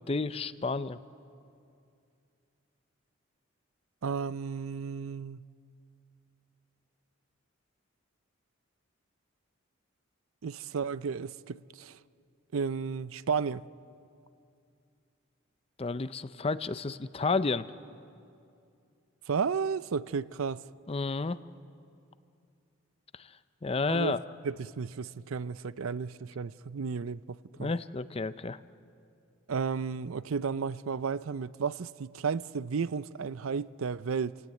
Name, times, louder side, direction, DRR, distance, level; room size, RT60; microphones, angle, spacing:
voice 1, 0.1-1.0 15.8-17.7 20.9-21.4 23.2-23.3 23.6-24.2 27.6-28.6, left 3 dB, 30° left, 0.5 m, -31 dB
voice 2, 4.0-5.4 10.4-12.0 12.5-13.7 19.3-20.6 23.9-24.2 24.4-27.7 29.5-34.4, right 5 dB, 80° right, 0.5 m, -33 dB
29.0 x 17.0 x 9.1 m
head